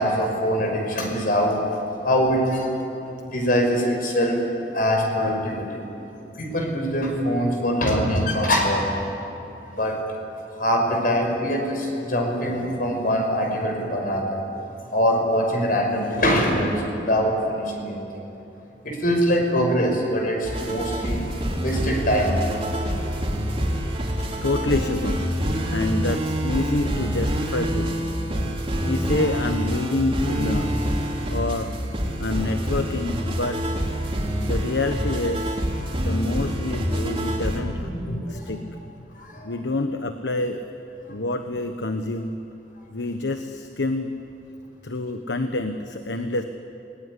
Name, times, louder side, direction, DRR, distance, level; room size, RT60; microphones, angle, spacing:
voice 1, 0.0-2.7 3.2-4.4 4.7-5.8 6.4-8.9 9.7-10.0 10.4-14.4 14.9-18.1 18.8-21.3 21.5-22.6 22.9-23.2 23.8-24.1 24.4-24.5 37.8-38.5 39.1-39.6 41.1-41.2, equal, 50° left, 1 dB, 5.9 m, -23 dB
sound 1, 20.4-37.6, equal, 30° right, 3.8 m, -26 dB
voice 2, 24.4-28.0 28.4-28.5 28.8-30.8 31.3-31.7 32.2-33.7 34.4-35.6 36.0-37.9 38.3-38.6 39.4-40.7 41.1-42.4 42.9-44.1 44.8-46.4, left 2 dB, 90° left, 7 dB, 1.2 m, -27 dB
28.0 x 20.0 x 10.0 m, 2.9 s
head